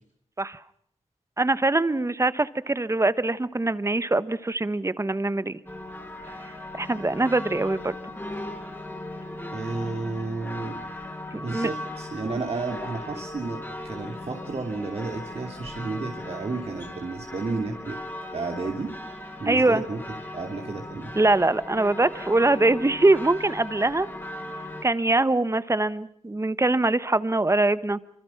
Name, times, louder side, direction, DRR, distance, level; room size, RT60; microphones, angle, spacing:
voice 1, 1.4-5.6 6.7-7.9 11.5-11.7 12.3-12.4 19.4-19.8 21.2-24.1 24.8-28.0, right 2 dB, 25° right, 15 dB, 1.1 m, -23 dB
sound 1, 5.7-24.8, left 1 dB, 20° left, 5.0 m, -38 dB
voice 2, 9.5-10.8 11.3-18.0 18.3-18.9 19.4-20.0 20.3-21.1, right 3 dB, 55° right, 2 dB, 2.9 m, -32 dB
26.0 x 25.5 x 5.8 m, 0.66 s
wide cardioid pair, 80°, 12 cm